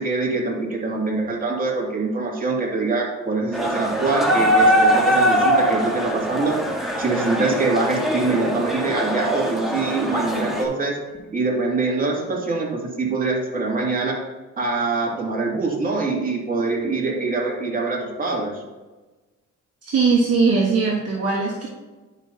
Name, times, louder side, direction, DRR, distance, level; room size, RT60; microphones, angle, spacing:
voice 1, 0.0-11.0 11.2-14.2 14.6-18.6, right 3 dB, 30° right, -2 dB, 2.3 m, -24 dB
sound 1, 3.5-10.6, equal, ahead, 1.5 m, -21 dB
voice 2, 19.8-21.7, right 4 dB, 55° right, -3 dB, 1.4 m, -20 dB
10.5 x 5.4 x 2.8 m, 1.2 s
cardioid pair, 90°, 30 cm